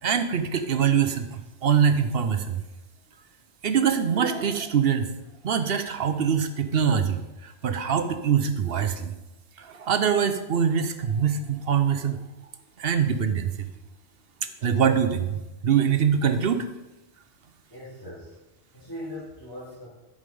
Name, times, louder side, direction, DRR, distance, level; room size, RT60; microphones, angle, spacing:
voice 1, 0.0-2.6 3.6-5.1 5.4-9.1 9.6-12.2 12.8-13.7 14.6-16.7, right 7 dB, 60° right, 9 dB, 0.8 m, -24 dB
voice 2, 17.7-18.3 18.7-19.9, left 1 dB, 20° left, -11 dB, 3.2 m, -39 dB
11.5 x 5.2 x 5.4 m, 1.0 s
omnidirectional pair, 1.2 m